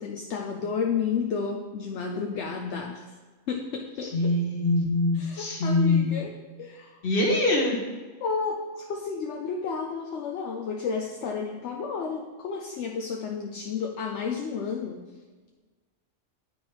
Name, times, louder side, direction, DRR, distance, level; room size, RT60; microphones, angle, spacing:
voice 1, 0.0-3.1 3.5-4.3 5.1-6.3 6.6-7.0 8.2-15.0, left 5 dB, 70° left, 2 dB, 0.9 m, -31 dB
voice 2, 4.1-6.2 7.0-7.8, left 2 dB, 50° left, 0 dB, 1.4 m, -24 dB
10.0 x 4.3 x 3.4 m, 1.4 s
omnidirectional pair, 1.2 m